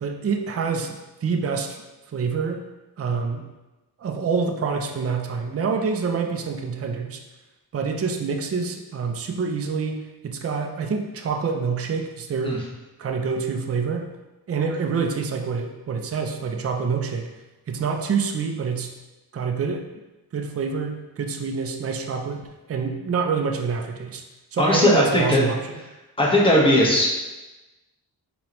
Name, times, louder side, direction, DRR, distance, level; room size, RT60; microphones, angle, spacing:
voice 1, 0.0-1.8 2.1-2.6 3.0-3.4 4.0-7.2 7.7-12.6 13.0-14.1 14.5-17.3 17.7-18.9 19.3-19.8 20.3-24.2 24.5-25.8, right 5 dB, 35° right, 4 dB, 0.5 m, -26 dB
voice 2, 24.6-25.4 26.2-27.1, left 1 dB, 15° left, -4 dB, 1.2 m, -18 dB
4.6 x 3.1 x 3.0 m, 1.1 s
cardioid pair, 60°, 40 cm